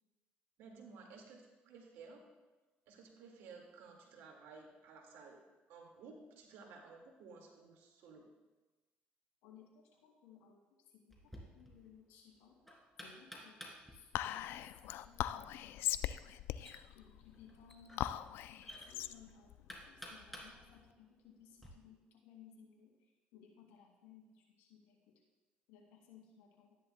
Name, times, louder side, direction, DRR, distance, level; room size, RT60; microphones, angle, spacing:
voice 1, 0.6-2.2 2.9-5.4 5.7-8.3, right 4 dB, 80° right, 1 dB, 1.9 m, -55 dB
voice 2, 9.4-16.1 16.9-25.2 25.7-26.8, left 7 dB, 90° left, 0 dB, 2.3 m, -61 dB
Knock, 11.1-21.7, equal, 5° left, 2.6 m, -56 dB
Whispering, 14.1-20.8, left 13 dB, 70° left, 0.3 m, -40 dB
13.0 x 10.5 x 2.2 m, 1.2 s
supercardioid pair, 85°, 4 cm